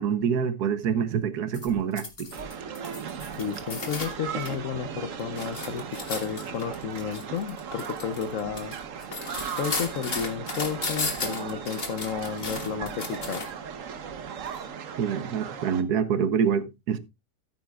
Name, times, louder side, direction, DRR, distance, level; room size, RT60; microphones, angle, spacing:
voice 1, 0.0-2.3 15.0-17.0, right 7 dB, 70° right, 1.4 m, -26 dB
sound 1, 1.5-4.6 5.0-13.7 14.5-14.6, left 3 dB, 35° left, 1.8 m, -35 dB
sound 2, 2.3-15.8, right 7 dB, 55° right, 1.2 m, -37 dB
voice 2, 3.4-8.7 9.6-13.4, left 7 dB, 60° left, 0.9 m, -32 dB
13.5 x 9.2 x 2.3 m
omnidirectional pair, 1.8 m